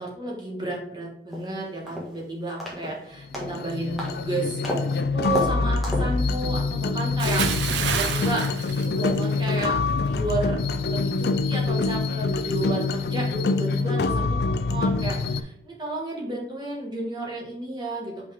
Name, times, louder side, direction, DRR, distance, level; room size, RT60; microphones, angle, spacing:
voice 1, 0.0-4.6 5.1-8.4 8.8-10.6 10.9-18.3, right 2 dB, 25° right, -2 dB, 1.7 m, -32 dB
sound 1, 1.3-1.4 1.9-2.2 2.6-2.9 3.3-3.6 4.0-4.2 4.6-4.9 5.3-5.5 5.8-6.1, equal, ahead, 1.6 m, -31 dB
sound 2, 3.2-15.4, left 3 dB, 60° left, 0.4 m, -25 dB
Bathtub (filling or washing) / Splash splatter, 7.2-9.6 9.9-10.2, right 7 dB, 75° right, 0.6 m, -29 dB
5.8 x 4.6 x 3.5 m, 0.80 s
head